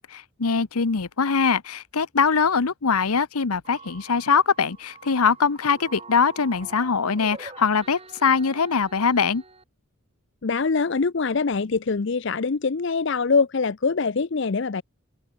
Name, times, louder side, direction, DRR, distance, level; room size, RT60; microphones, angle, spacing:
voice 1, 0.1-9.4, left 5 dB, 90° left, 0.9 m, -22 dB
sound 1, 3.6-9.6, right 3 dB, 25° right, 4.6 m, -45 dB
voice 2, 10.4-14.8, left 4 dB, 55° left, 0.6 m, -23 dB
open air
head